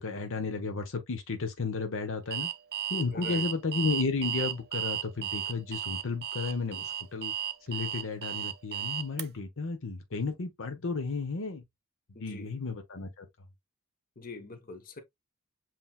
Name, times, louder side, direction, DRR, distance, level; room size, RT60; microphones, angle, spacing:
voice 1, 0.0-2.5 2.9-7.3 7.7-11.6 12.2-13.3, left 4 dB, 65° left, 0.9 m, -33 dB
Alarm, 2.3-9.2, right 10 dB, 45° right, 0.5 m, -34 dB
voice 2, 3.1-3.4 12.1-12.6 14.2-15.0, left 3 dB, 40° left, 1.0 m, -44 dB
7.6 x 2.9 x 2.3 m
head